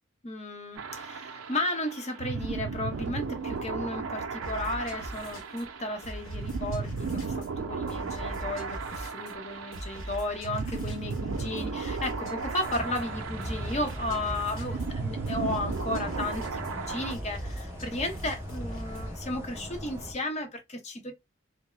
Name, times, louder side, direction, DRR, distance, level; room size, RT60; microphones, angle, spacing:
voice 1, 0.2-21.1, left 1 dB, 35° left, 0.6 m, -34 dB
sound 1, 0.8-17.2, right 5 dB, 85° right, 0.5 m, -36 dB
sound 2, 4.4-19.2, equal, 80° left, 1.0 m, -42 dB
sound 3, 12.7-20.1, equal, 10° right, 0.4 m, -39 dB
2.3 x 2.0 x 2.9 m
head